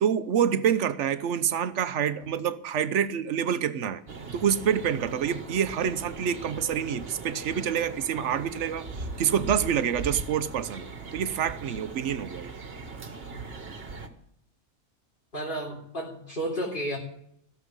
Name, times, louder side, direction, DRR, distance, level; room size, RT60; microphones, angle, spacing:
voice 1, 0.0-4.0 4.3-8.9 9.2-12.5, right 8 dB, 80° right, 1.1 m, -27 dB
sound 1, 4.1-14.1, right 4 dB, 55° right, 1.7 m, -40 dB
voice 2, 15.3-17.0, right 1 dB, 45° left, 3.4 m, -32 dB
16.5 x 7.2 x 9.7 m
omnidirectional pair, 1.2 m